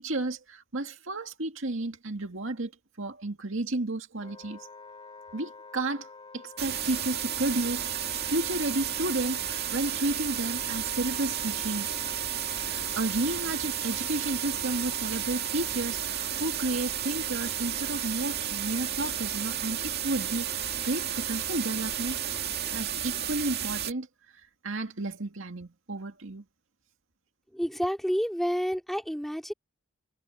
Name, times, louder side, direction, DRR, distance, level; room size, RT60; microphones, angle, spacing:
voice 1, 0.0-2.7 3.0-4.7 5.3-6.1 6.3-11.9 12.6-22.2 22.7-24.1 24.6-26.4, right 2 dB, 70° right, 2.1 m, -32 dB
Wind instrument woodwind instrument, 4.2-22.8, left 4 dB, 25° left, 3.6 m, -47 dB
sound 1, 6.6-23.9, right 10 dB, 50° right, 2.2 m, -32 dB
voice 2, 27.5-29.5, equal, ahead, 5.1 m, -29 dB
head